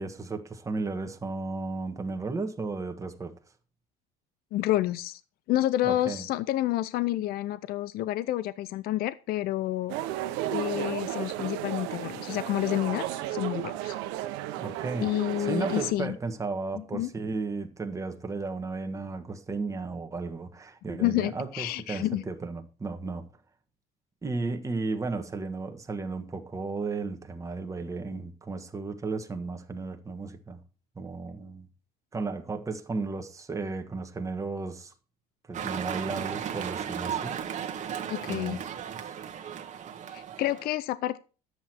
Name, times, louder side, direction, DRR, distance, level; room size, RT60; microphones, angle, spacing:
voice 1, 0.0-3.4 5.8-6.3 14.6-15.1 15.4-23.3 24.2-30.6 30.9-31.7 32.1-34.9 35.5-37.4 38.3-38.6 39.1-39.2, right 3 dB, 15° right, 1.4 m, -34 dB
voice 2, 4.5-5.2 5.5-10.0 10.5-13.9 15.0-16.2 16.7-17.1 20.9-22.2 38.1-38.6 40.1-41.2, left 14 dB, 55° left, 0.6 m, -29 dB
sound 1, 9.9-15.9, right 14 dB, 80° right, 0.9 m, -34 dB
sound 2, 35.5-40.7, right 8 dB, 40° right, 1.3 m, -35 dB
10.0 x 7.9 x 4.4 m
cardioid pair, 110°, 18 cm